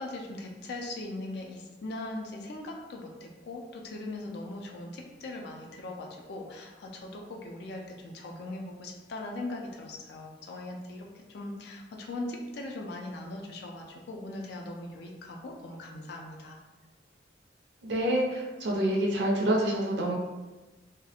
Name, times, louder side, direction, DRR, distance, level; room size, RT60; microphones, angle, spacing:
voice 1, 0.0-16.6, left 2 dB, 60° left, 1 dB, 0.4 m, -40 dB
voice 2, 17.8-20.2, right 1 dB, 65° right, -2 dB, 0.4 m, -27 dB
2.3 x 2.0 x 2.8 m, 1.2 s
head